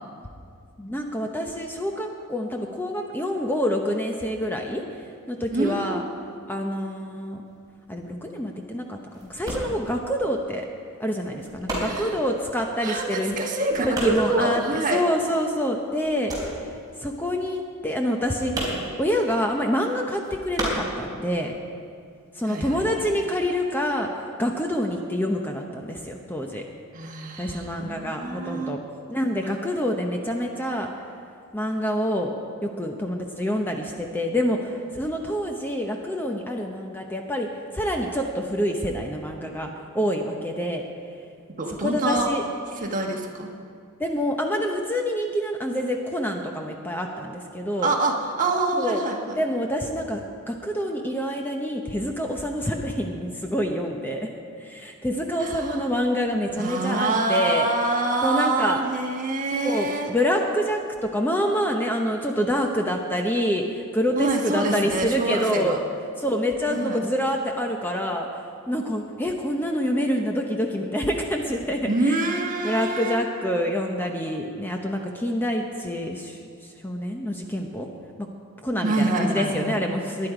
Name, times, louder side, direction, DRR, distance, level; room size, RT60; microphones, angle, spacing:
voice 1, 0.8-4.8 5.3-6.0 6.5-7.4 7.9-9.0 9.3-10.7 11.0-13.4 13.8-16.6 17.0-21.5 22.3-26.6 27.4-28.8 29.1-30.9 31.5-32.3 32.6-37.5 37.7-40.8 41.8-42.4 42.7-42.9 44.0-47.9 48.7-49.0 49.4-54.3 54.6-57.7 58.2-58.8 59.5-65.8 66.2-72.3 72.6-77.9 78.6-80.3, equal, 10° left, 2 dB, 0.8 m, -27 dB
voice 2, 5.5-6.0 11.8-12.2 12.8-15.0 22.4-22.8 26.9-28.7 41.6-42.3 42.8-43.5 47.8-49.4 55.4-55.8 56.6-60.1 64.2-65.8 66.7-67.0 71.9-73.2 78.8-79.8, right 2 dB, 35° right, 1 dB, 1.5 m, -26 dB
sound 1, 7.5-15.5 15.7-21.6 21.9-22.9, right 1 dB, 20° right, 3.9 m, -33 dB
19.5 x 10.5 x 4.9 m, 2.3 s
head